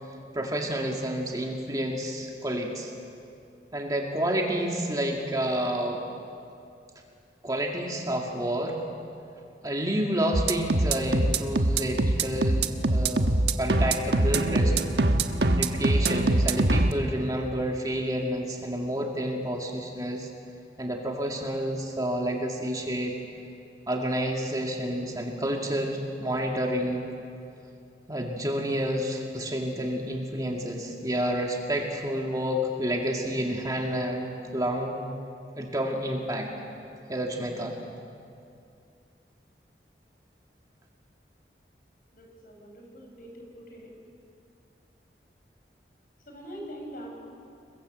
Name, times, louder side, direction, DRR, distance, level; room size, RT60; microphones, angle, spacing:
voice 1, 0.3-2.9 3.7-6.0 7.4-8.8 9.6-14.7 15.5-20.3 20.8-23.2 23.9-27.1 28.1-35.1 35.6-36.5 37.1-37.8, equal, 20° right, 0 dB, 2.1 m, -29 dB
sound 1, 10.3-16.9, right 2 dB, 70° right, 1.2 m, -23 dB
voice 2, 42.1-43.9 46.3-47.1, equal, 50° left, 1 dB, 6.5 m, -43 dB
28.5 x 21.5 x 7.9 m, 2.5 s
head